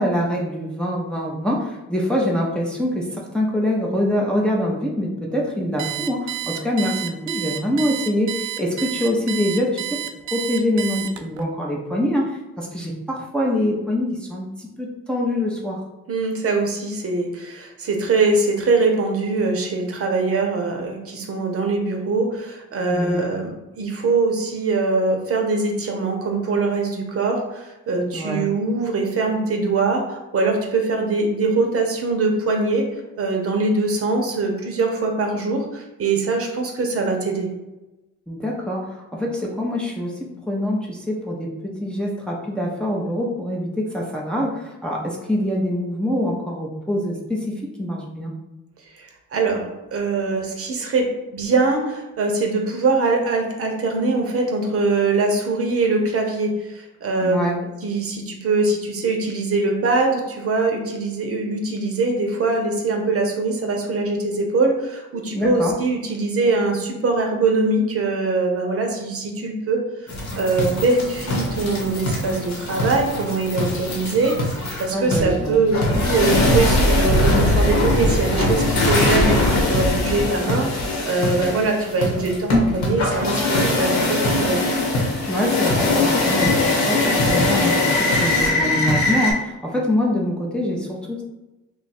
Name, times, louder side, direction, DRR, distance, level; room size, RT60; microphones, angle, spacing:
voice 1, 0.0-10.0 10.3-15.8 22.9-23.3 28.1-28.5 38.3-41.5 41.8-48.3 57.2-57.6 65.3-65.8 74.9-75.6 85.3-87.8 88.2-91.2, left 1 dB, 5° left, -3 dB, 0.6 m, -24 dB
Alarm, 5.8-11.4, right 13 dB, 70° right, 0.5 m, -30 dB
voice 2, 16.1-32.9 33.2-37.5 48.9-57.4 57.8-75.8 76.1-84.7, right 3 dB, 50° right, 2 dB, 0.8 m, -22 dB
sound 1, 70.1-89.3, left 2 dB, 65° left, 1.1 m, -21 dB
3.0 x 2.4 x 4.2 m, 1.0 s
cardioid pair, 90°, 30 cm